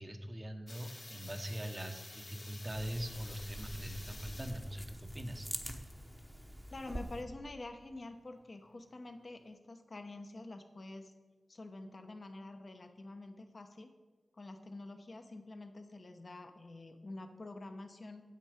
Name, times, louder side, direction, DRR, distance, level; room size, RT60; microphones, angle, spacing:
voice 1, 0.0-5.5, equal, 30° right, 7 dB, 1.0 m, -42 dB
sound 1, 0.7-9.5, left 2 dB, 30° left, 0.5 m, -52 dB
sound 2, 2.7-7.2, equal, 5° right, 1.0 m, -46 dB
voice 2, 6.7-11.1 11.5-13.9 14.3-18.2, left 2 dB, 50° left, 6 dB, 1.0 m, -47 dB
9.2 x 8.2 x 5.1 m, 1.3 s
wide cardioid pair, 70°, 0 cm